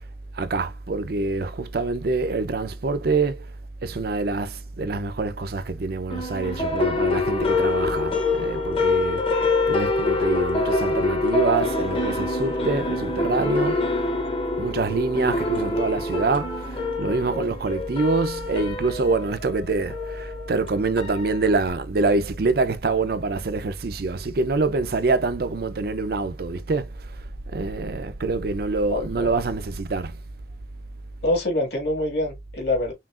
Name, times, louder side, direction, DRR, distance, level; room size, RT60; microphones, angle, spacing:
voice 1, 0.3-3.5 3.8-8.1 8.4-9.3 9.7-13.8 14.6-27.1 27.5-30.2, right 3 dB, 55° right, 0.5 m, -25 dB
sound 1, 6.1-21.7, left 3 dB, 30° left, 0.8 m, -25 dB
voice 2, 28.9-29.3 31.2-32.9, left 1 dB, 60° left, 1.9 m, -25 dB
5.7 x 2.4 x 2.4 m
head